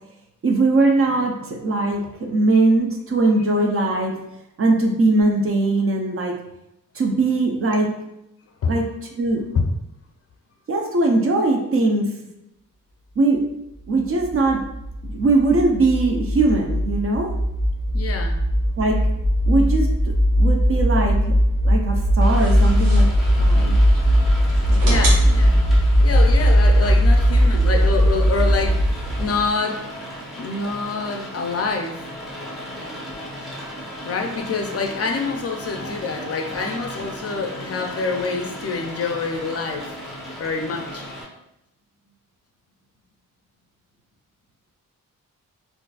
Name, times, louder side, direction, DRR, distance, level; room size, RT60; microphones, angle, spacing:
voice 1, 0.4-4.2 4.6-6.4 7.0-7.9 8.7-8.9 9.2-9.4 10.7-12.1 13.2-13.4 13.9-14.6 15.0-17.3 18.8-19.0 19.5-19.9 20.4-21.4 21.6-23.1 23.4-23.7 24.7-25.1, right 2 dB, 40° right, 2 dB, 0.5 m, -20 dB
sound 1, 14.2-29.5, equal, 70° right, 1.2 m, -18 dB
voice 2, 17.9-18.4 24.8-25.6 26.0-29.8 30.4-32.0 34.1-40.0 40.4-41.0, left 4 dB, 45° left, 3 dB, 0.4 m, -26 dB
Rain, 22.2-41.2, equal, ahead, 0.7 m, -36 dB
sound 2, 22.3-29.3, right 1 dB, 85° right, 1.0 m, -33 dB
3.8 x 2.5 x 2.3 m, 0.85 s
wide cardioid pair, 135°, 33 cm